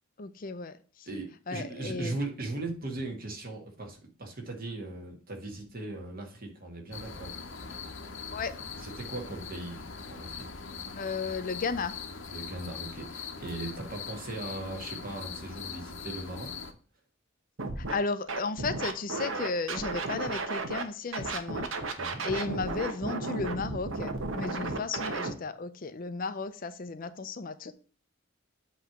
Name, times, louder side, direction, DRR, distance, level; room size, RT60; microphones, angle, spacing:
voice 1, 0.2-1.1 1.5-2.2 8.3-8.5 11.0-11.9 17.8-21.7 22.2-27.7, left 4 dB, 45° left, 11 dB, 0.5 m, -34 dB
voice 2, 1.1-7.4 8.8-9.8 10.1-10.5 12.3-16.5 22.0-22.2, right 2 dB, 45° right, 2 dB, 1.7 m, -38 dB
sound 1, 6.9-16.7, left 5 dB, 65° left, 0.9 m, -41 dB
Scratching (performance technique), 17.6-17.9 18.3-20.8 21.1-25.3, right 3 dB, 75° right, 1.0 m, -33 dB
8.0 x 3.2 x 5.9 m, 0.41 s
head